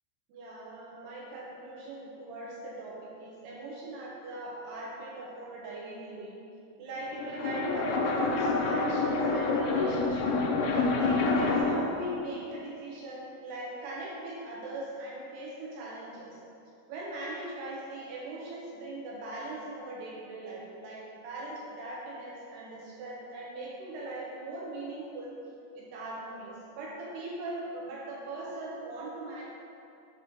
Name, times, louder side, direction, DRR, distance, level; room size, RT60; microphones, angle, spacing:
voice 1, 0.3-6.4 6.8-16.4 16.9-25.3 25.7-29.4, right 2 dB, 75° right, -5 dB, 2.6 m, -40 dB
sound 1, 7.0-11.9, left 3 dB, 85° left, 2.9 m, -27 dB
7.6 x 5.9 x 2.9 m, 2.6 s
omnidirectional pair, 5.3 m